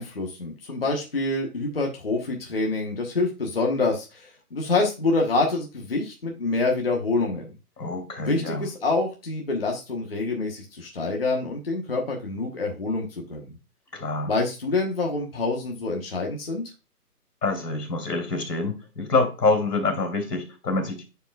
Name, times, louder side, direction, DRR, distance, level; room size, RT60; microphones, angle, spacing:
voice 1, 0.0-7.5 8.2-13.5 14.2-16.6, left 3 dB, 40° left, 0 dB, 1.2 m, -26 dB
voice 2, 7.8-8.6 13.9-14.3 17.4-21.0, left 3 dB, 85° left, 5 dB, 2.9 m, -26 dB
9.9 x 4.6 x 2.3 m, 0.29 s
hypercardioid pair, 175°, 47 cm